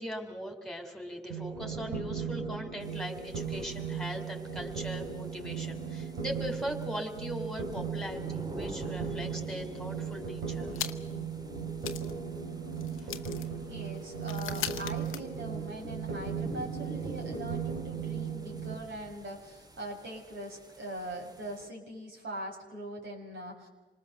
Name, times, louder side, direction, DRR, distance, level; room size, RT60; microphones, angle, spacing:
voice 1, 0.0-10.8 13.0-13.5, equal, ahead, 3 dB, 4.0 m, -40 dB
sound 1, 1.3-18.8, right 6 dB, 90° right, 3.5 m, -37 dB
sound 2, 2.8-21.7, right 1 dB, 20° right, 1.9 m, -49 dB
sound 3, 10.7-11.3 11.5-11.6 11.8-15.9, left 11 dB, 85° left, 0.9 m, -41 dB
voice 2, 13.7-23.7, right 1 dB, 70° right, -2 dB, 6.3 m, -42 dB
27.0 x 19.5 x 6.8 m, 1.1 s
supercardioid pair, 45°, 21 cm